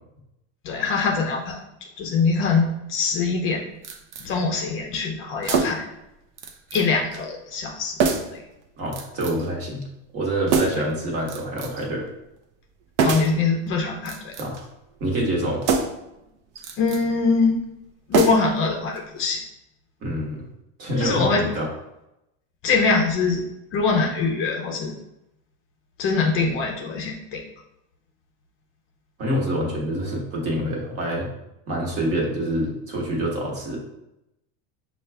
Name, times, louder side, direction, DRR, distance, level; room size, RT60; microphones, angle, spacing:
voice 1, 0.6-1.6 2.0-3.6 4.2-5.8 6.7-7.9 8.3-8.4 13.0-14.3 16.8-17.6 18.1-19.4 21.0-21.4 22.6-23.4 23.7-24.9 26.0-27.4, left 4 dB, 35° left, 1 dB, 0.5 m, -23 dB
sound 1, 3.8-4.3 5.4-5.9 6.4-6.9 7.1-7.2 8.0-8.4 8.9-9.5 10.5-10.9 11.3-11.9 13.0-13.4 14.0-14.7 15.6-16.1 16.6-17.0 18.1-18.7 19.0-19.1, right 5 dB, 65° right, 0.7 m, -25 dB
voice 2, 8.8-9.9 10.1-12.1 14.4-14.6 15.0-15.6 20.0-20.5 20.8-21.7 29.2-31.3 31.7-33.8, right 1 dB, 40° right, -1 dB, 1.2 m, -26 dB
5.5 x 2.4 x 3.3 m, 0.88 s
supercardioid pair, 145°, 38 cm